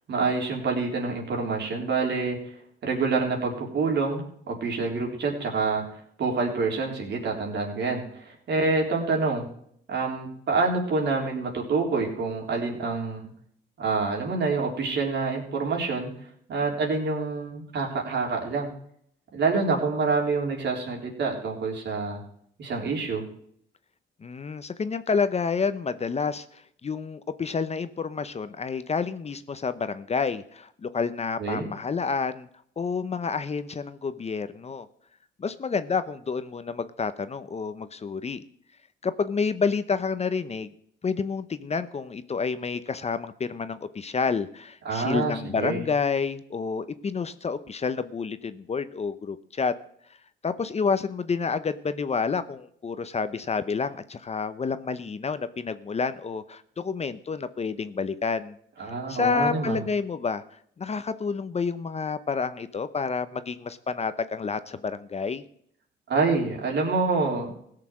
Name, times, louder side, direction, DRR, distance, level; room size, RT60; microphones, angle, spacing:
voice 1, 0.1-2.5 2.8-9.5 9.9-13.3 13.8-16.1 16.5-18.7 19.3-22.2 22.6-23.2 31.4-31.7 44.9-45.8 58.8-59.8 66.1-67.5, right 4 dB, 60° right, 0 dB, 3.8 m, -27 dB
voice 2, 24.2-32.5 32.8-34.9 35.4-38.4 39.0-40.7 41.0-49.7 50.4-58.6 59.1-60.4 60.8-65.4, left 5 dB, 30° left, 13 dB, 0.8 m, -29 dB
16.5 x 6.7 x 6.2 m, 0.66 s
cardioid pair, 90°, 20 cm